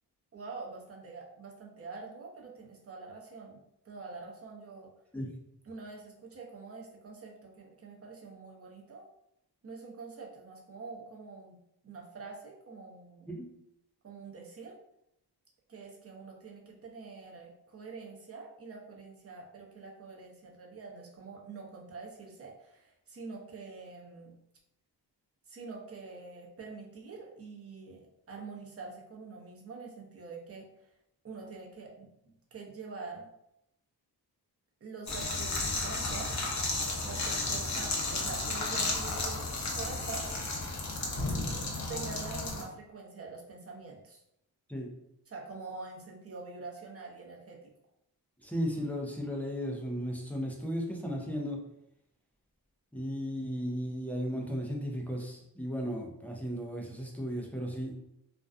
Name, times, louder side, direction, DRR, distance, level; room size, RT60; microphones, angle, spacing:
voice 1, 0.3-4.9 5.6-9.1 9.6-11.6 11.8-13.3 14.0-14.8 15.7-24.3 25.5-30.7 31.2-32.1 32.5-33.3 34.8-36.3 37.0-39.5 39.7-40.4 41.9-44.2 45.3-47.7, right 4 dB, 35° right, -1 dB, 0.7 m, -45 dB
sound 1, 35.1-42.6, left 2 dB, 45° left, 0.7 m, -33 dB
voice 2, 48.4-51.6 52.9-57.9, equal, 5° left, -1 dB, 0.4 m, -35 dB
2.5 x 2.2 x 2.4 m, 0.80 s
cardioid pair, 80°, 41 cm